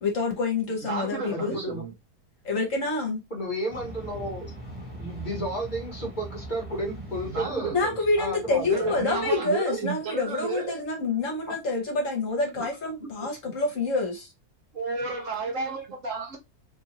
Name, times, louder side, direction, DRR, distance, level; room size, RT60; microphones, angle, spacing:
voice 1, 0.0-1.6 2.4-3.2 7.7-14.3, left 3 dB, 55° left, 1.5 m, -27 dB
voice 2, 0.8-1.9 7.2-8.0 8.7-10.8 14.7-16.4, right 4 dB, 60° right, 1.3 m, -32 dB
voice 3, 1.3-1.8 3.3-4.5 4.9-7.7 8.2-8.9 11.5-11.6 12.6-12.7 13.0-13.1, right 1 dB, 30° left, 1.4 m, -32 dB
sound 1, 3.7-9.4, right 1 dB, 25° right, 1.0 m, -41 dB
3.7 x 2.6 x 2.9 m
omnidirectional pair, 1.7 m